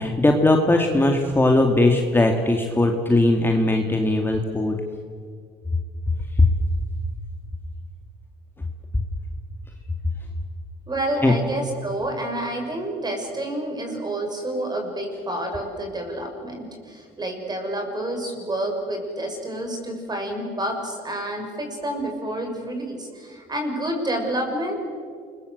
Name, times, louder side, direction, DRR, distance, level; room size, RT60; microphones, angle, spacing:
voice 1, 0.0-4.8 6.4-6.5 11.2-11.3, left 2 dB, 15° left, 3 dB, 2.2 m, -19 dB
voice 2, 10.9-24.7, right 1 dB, 25° right, 4 dB, 6.5 m, -29 dB
28.5 x 22.0 x 8.1 m, 2.1 s
cardioid pair, 110°, 17 cm